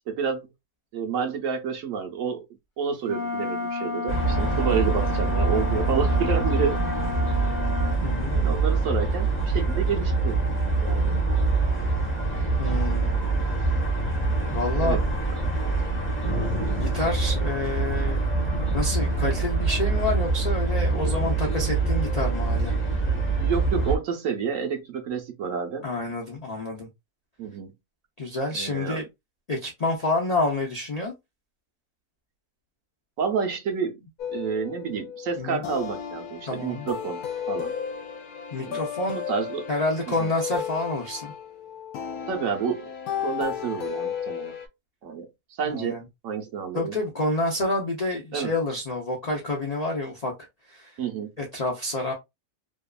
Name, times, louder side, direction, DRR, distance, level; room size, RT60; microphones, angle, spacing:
voice 1, 0.1-0.5 0.9-2.4 2.8-6.8 8.3-10.4 10.8-11.2 14.8-15.0 23.3-25.9 27.4-27.7 28.5-29.0 33.2-34.0 34.3-37.2 37.5-37.8 38.6-38.8 39.1-39.7 40.2-40.3 42.3-44.5 45.0-45.3 45.6-46.9 48.3-48.5 51.0-51.3, right 6 dB, 65° right, 1.0 m, -29 dB
Wind instrument woodwind instrument, 3.0-8.0, left 4 dB, 45° left, 0.8 m, -31 dB
sound 1, 4.1-24.0, right 3 dB, 10° left, 0.7 m, -25 dB
voice 2, 8.0-8.4 12.6-13.2 14.5-15.0 16.7-18.2 18.7-22.7 25.8-26.9 28.2-29.0 29.5-31.1 35.4-35.6 36.5-36.9 38.5-39.2 39.7-41.3 45.7-46.0 46.7-50.3 50.7-50.9 51.4-52.1, left 2 dB, 60° left, 0.4 m, -28 dB
sound 2, 34.2-44.7, left 8 dB, 75° left, 1.0 m, -34 dB
2.8 x 2.3 x 2.2 m
omnidirectional pair, 1.6 m